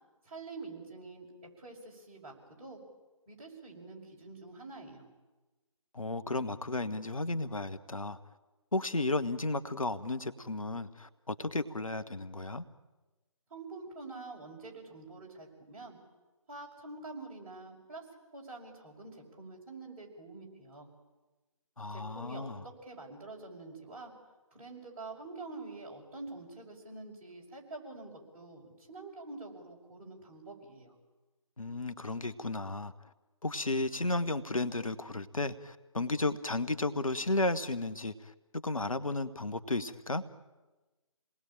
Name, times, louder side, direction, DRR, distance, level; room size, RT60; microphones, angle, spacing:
voice 1, 0.2-1.3 1.6-2.8 3.3-5.1 13.5-16.0 16.5-18.1 18.3-20.9 21.9-24.1 24.5-30.9, right 3 dB, 25° right, -4 dB, 5.9 m, -46 dB
voice 2, 5.9-8.2 8.7-12.6 21.8-22.6 31.6-32.9 33.4-40.2, left 2 dB, 75° left, 11 dB, 1.4 m, -33 dB
28.0 x 20.0 x 9.0 m, 1.2 s
figure-of-eight pair, 150°, 18 cm